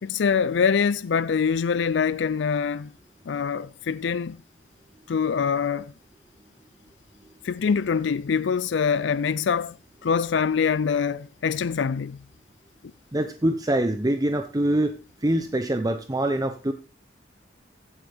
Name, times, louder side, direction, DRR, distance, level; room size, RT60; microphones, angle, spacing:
voice 1, 0.0-2.9 3.3-4.4 5.1-5.9 7.4-9.8 10.0-12.2, left 6 dB, 70° left, 0.4 m, -24 dB
voice 2, 13.1-14.9 15.2-16.7, right 1 dB, 20° right, 0.7 m, -24 dB
15.5 x 7.8 x 3.5 m
head